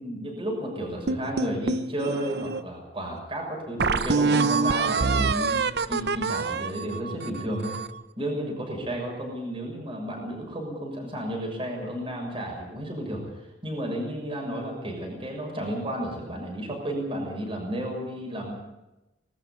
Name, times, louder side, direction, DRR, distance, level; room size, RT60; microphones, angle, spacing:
voice 1, 0.0-7.7 8.2-13.2 13.6-18.5, right 1 dB, 30° right, 0 dB, 6.7 m, -32 dB
sound 1, 1.1-2.6 3.2-3.3 3.8-8.0, right 4 dB, 60° right, 0.8 m, -26 dB
21.0 x 13.5 x 9.7 m, 0.98 s
head